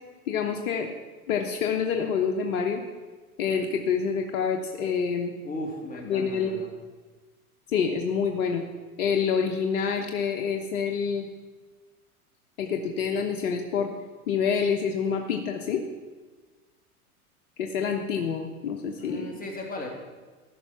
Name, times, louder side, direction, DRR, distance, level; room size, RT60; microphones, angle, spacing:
voice 1, 0.3-0.9 1.3-2.8 3.4-5.3 6.1-6.5 7.7-8.6 9.0-11.3 12.6-13.9 14.3-15.8 17.6-19.3, left 6 dB, 70° left, 3 dB, 1.1 m, -27 dB
voice 2, 5.4-6.7 19.0-19.9, left 1 dB, 20° left, 1 dB, 2.4 m, -36 dB
14.5 x 5.6 x 6.0 m, 1.3 s
hypercardioid pair, 105°, 45 cm